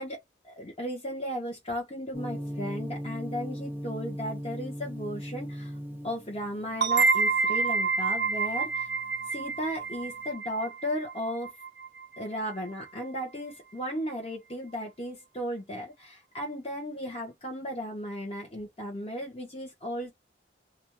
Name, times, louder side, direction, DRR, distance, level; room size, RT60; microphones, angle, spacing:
voice 1, 0.0-5.7 6.0-8.9 9.3-11.5 12.2-20.1, equal, 35° left, 0.9 m, -35 dB
Gong, 2.1-10.2, equal, 10° right, 0.6 m, -39 dB
sound 1, 6.8-12.2, right 4 dB, 60° right, 0.5 m, -28 dB
2.6 x 2.2 x 2.9 m
head